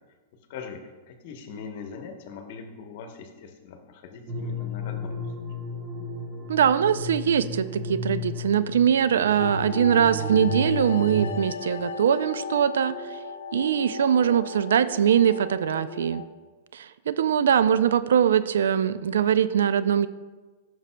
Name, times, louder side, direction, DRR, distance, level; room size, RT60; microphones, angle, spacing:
voice 1, 0.5-5.3, left 5 dB, 60° left, 5 dB, 1.0 m, -41 dB
sound 1, 4.3-11.3, left 1 dB, 40° right, 1.4 m, -33 dB
voice 2, 6.5-13.1 13.5-16.2 16.7-20.1, right 8 dB, 80° right, 14 dB, 0.3 m, -22 dB
sound 2, 9.4-16.3, left 5 dB, 80° left, 0.5 m, -36 dB
11.0 x 6.5 x 2.2 m, 1.3 s
hypercardioid pair, 120°, 0 cm